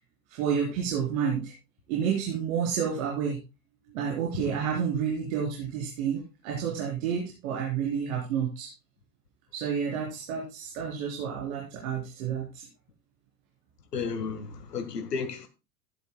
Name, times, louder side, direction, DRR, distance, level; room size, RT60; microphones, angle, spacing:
voice 1, 0.3-1.5 1.9-3.4 3.9-8.7 9.5-12.7, right 7 dB, 55° right, 4.1 m, -30 dB
voice 2, 13.9-15.5, left 5 dB, 80° left, 1.8 m, -33 dB
15.5 x 11.0 x 2.2 m
figure-of-eight pair, 80°, 47 cm